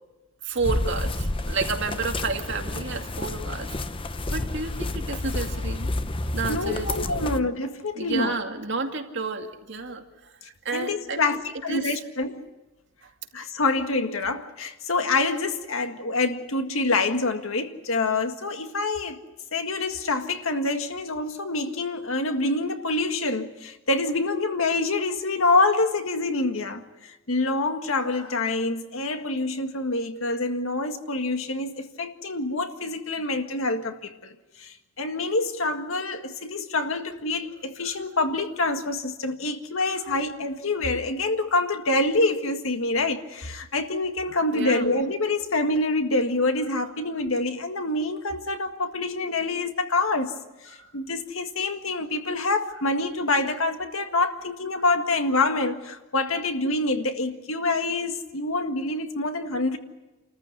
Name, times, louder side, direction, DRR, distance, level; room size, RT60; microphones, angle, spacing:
voice 1, 0.4-3.8 4.3-5.9 6.3-7.3 8.0-10.3 10.6-11.4 11.7-12.0 13.0-13.1 37.8-37.9 44.3-44.9 50.8-50.9, right 4 dB, 60° right, 2.3 m, -31 dB
sound 1, 0.6-7.4, left 2 dB, 25° left, 0.8 m, -30 dB
voice 2, 6.5-8.3 10.7-12.5 13.3-19.2 19.5-50.4 50.6-59.8, left 2 dB, 75° left, 1.8 m, -26 dB
28.5 x 14.5 x 9.9 m
head